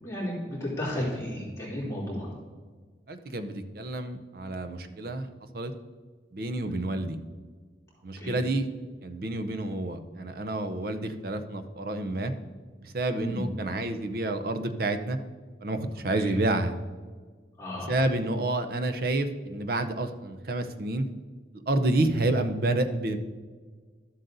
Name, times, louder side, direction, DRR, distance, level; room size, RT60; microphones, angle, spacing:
voice 1, 0.0-2.3 6.6-6.7 8.2-8.4 13.1-13.5 16.2-16.3 17.6-18.0, left 1 dB, 15° left, -7 dB, 2.8 m, -33 dB
voice 2, 3.1-5.3 5.5-5.7 6.3-7.2 8.0-8.7 9.0-12.3 12.8-15.2 15.6-16.8 17.9-21.0 21.7-23.2, right 2 dB, 55° right, 9 dB, 0.6 m, -29 dB
12.5 x 7.7 x 2.6 m, 1.5 s
head